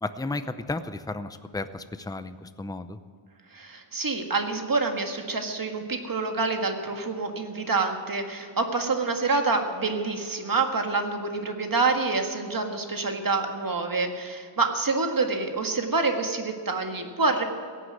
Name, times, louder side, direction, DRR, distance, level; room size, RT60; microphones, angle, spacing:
voice 1, 0.0-3.0, left 2 dB, 10° left, 11 dB, 0.6 m, -33 dB
voice 2, 3.5-17.4, right 3 dB, 45° right, 5 dB, 1.8 m, -27 dB
17.0 x 9.7 x 7.5 m, 2.2 s
wide cardioid pair, 115°, 47 cm